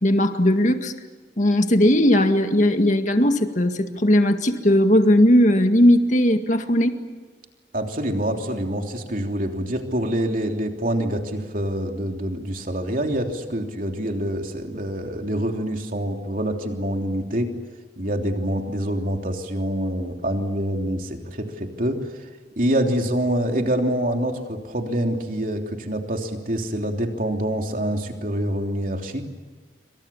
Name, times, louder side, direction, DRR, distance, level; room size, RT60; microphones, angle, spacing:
voice 1, 0.0-0.9 1.4-7.0, left 1 dB, 40° left, 6 dB, 2.0 m, -18 dB
voice 2, 7.7-17.5 18.0-22.0 22.6-29.3, right 1 dB, 50° right, 3 dB, 3.2 m, -26 dB
28.0 x 25.5 x 7.2 m, 1.4 s
head